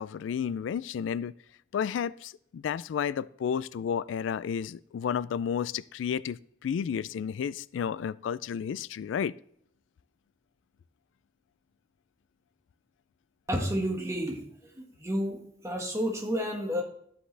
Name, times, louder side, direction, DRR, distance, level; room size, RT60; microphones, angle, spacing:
voice 1, 0.0-1.3 1.7-9.3, left 7 dB, 90° left, 19 dB, 0.3 m, -32 dB
voice 2, 13.5-14.4 14.8-16.8, equal, 15° right, 2 dB, 1.5 m, -30 dB
12.0 x 7.8 x 3.3 m, 0.68 s
head